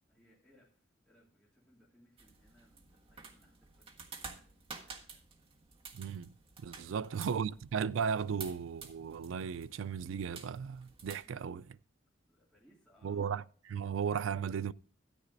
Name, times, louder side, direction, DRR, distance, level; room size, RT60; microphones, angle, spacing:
voice 1, 0.1-5.3 6.6-7.2 11.2-11.7 12.3-13.3, equal, 5° left, 2.7 m, -68 dB
sound 1, 2.2-11.2, right 5 dB, 30° right, 1.5 m, -51 dB
voice 2, 5.9-6.3 6.6-11.7 13.0-14.7, right 7 dB, 75° right, 0.4 m, -36 dB
13.5 x 9.9 x 2.6 m
head